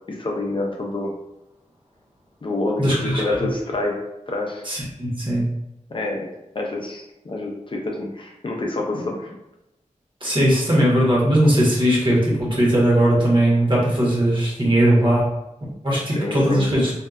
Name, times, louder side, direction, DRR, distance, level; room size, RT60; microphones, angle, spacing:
voice 1, 0.1-1.1 2.4-4.0 4.3-4.6 5.9-6.3 6.5-9.3 16.1-16.6, left 2 dB, 40° left, 0 dB, 0.4 m, -27 dB
voice 2, 2.8-3.2 4.6-5.5 10.2-15.3 15.8-16.9, right 1 dB, 40° right, -5 dB, 1.0 m, -19 dB
2.7 x 2.2 x 2.3 m, 0.89 s
wide cardioid pair, 80°, 13 cm